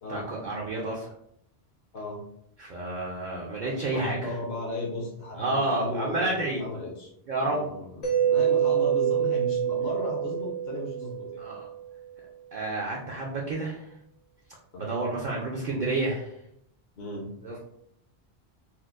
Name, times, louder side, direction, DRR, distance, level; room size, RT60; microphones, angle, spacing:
voice 1, 0.1-1.1 2.6-4.2 5.3-6.6 7.3-7.7 11.4-11.7 12.5-13.8 14.8-16.3 17.4-17.6, right 2 dB, 55° right, -2 dB, 0.6 m, -30 dB
voice 2, 3.9-7.1 7.4-11.4 14.7-14.9 17.0-17.3, left 1 dB, 70° left, -2 dB, 1.0 m, -35 dB
Mallet percussion, 8.0-11.8, right 9 dB, 50° left, 0.5 m, -26 dB
4.3 x 2.0 x 2.4 m, 0.73 s
omnidirectional pair, 1.1 m